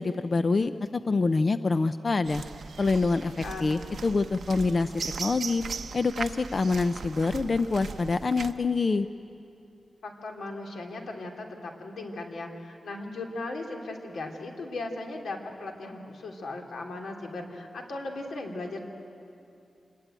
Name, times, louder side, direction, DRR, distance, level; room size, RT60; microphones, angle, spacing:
voice 1, 0.0-2.4 2.8-4.9 5.2-5.6 5.9-9.1, left 3 dB, 35° left, 11 dB, 0.5 m, -26 dB
sound 1, 2.3-8.5, right 5 dB, 65° right, 0.8 m, -38 dB
voice 2, 3.2-3.6 10.0-18.8, left 2 dB, 85° left, 1 dB, 3.1 m, -37 dB
26.5 x 20.5 x 9.0 m, 2.7 s
wide cardioid pair, 155°, 0 cm